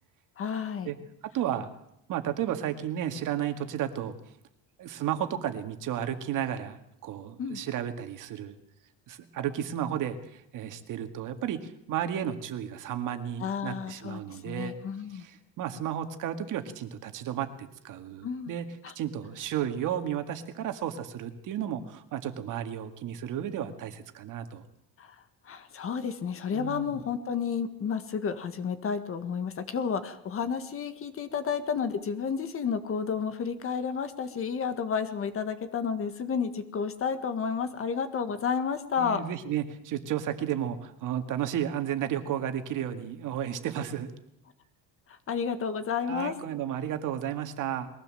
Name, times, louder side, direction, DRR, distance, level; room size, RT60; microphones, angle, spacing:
voice 1, 0.4-0.9 7.4-7.6 13.4-15.3 18.2-18.5 18.8-18.9 25.0-39.2 45.1-46.3, left 6 dB, 40° left, 10 dB, 1.7 m, -31 dB
voice 2, 1.3-1.7 2.1-4.1 4.8-8.6 9.1-14.7 15.1-18.7 19.0-24.6 26.5-27.0 39.0-44.1 46.1-47.9, right 10 dB, 60° right, 7 dB, 2.0 m, -33 dB
22.0 x 16.5 x 7.7 m, 0.79 s
cardioid pair, 155°, 36 cm